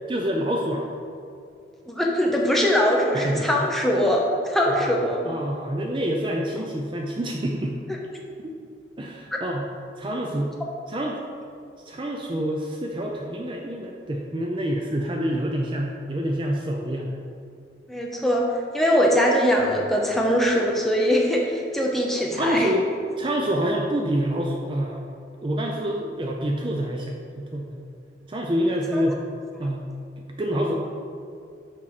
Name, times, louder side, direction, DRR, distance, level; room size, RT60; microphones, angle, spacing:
voice 1, 0.1-0.9 3.1-3.5 4.6-4.9 5.2-7.8 8.4-8.5 9.0-9.7 10.0-10.5 10.9-11.2 11.9-17.2 22.4-22.9 23.2-25.0 25.4-27.7 28.3-29.2 29.6-29.8 30.4-30.7, equal, 30° right, 0 dB, 0.5 m, -27 dB
voice 2, 1.8-5.2 7.9-8.0 17.9-18.5 18.7-22.7 28.9-29.0, equal, ahead, -2 dB, 0.8 m, -22 dB
6.2 x 4.6 x 5.9 m, 2.5 s
head